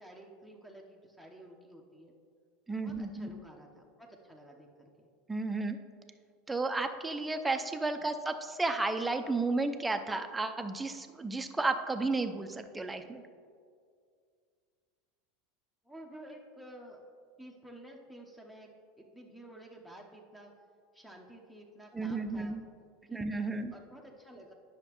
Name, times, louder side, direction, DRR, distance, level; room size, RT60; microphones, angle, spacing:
voice 1, 0.0-2.1 2.8-5.1 7.9-8.0 15.9-17.0 17.4-20.5 20.9-22.5 23.1-23.2 23.5-24.5, right 1 dB, 5° left, 1 dB, 0.9 m, -52 dB
voice 2, 2.7-3.4 5.3-5.8 6.5-13.2 21.9-22.6 23.1-23.7, right 3 dB, 10° right, 7 dB, 0.5 m, -33 dB
10.5 x 5.8 x 3.0 m, 2.2 s
figure-of-eight pair, 80°, 0 cm